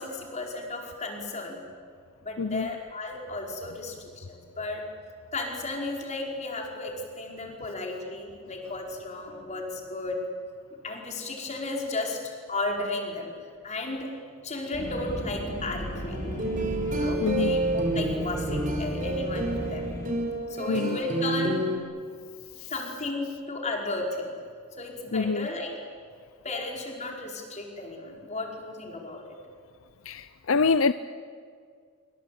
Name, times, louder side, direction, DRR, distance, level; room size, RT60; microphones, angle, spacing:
voice 1, 0.0-1.6 2.2-4.8 5.3-10.2 10.8-12.2 12.5-13.3 13.6-14.1 14.4-16.3 16.8-19.9 20.5-21.6 22.7-24.3 24.8-25.7 26.4-29.2, left 2 dB, 30° left, 1 dB, 5.2 m, -34 dB
voice 2, 2.4-2.7 17.2-17.6 20.7-21.0 22.6-22.7 25.1-25.5 30.0-30.9, left 4 dB, 70° left, 13 dB, 0.7 m, -25 dB
sound 1, 14.7-20.1, equal, 50° left, 5.7 m, -34 dB
sound 2, 16.1-21.8, right 2 dB, 35° right, 4.3 m, -29 dB
26.5 x 24.5 x 8.8 m, 2.1 s
head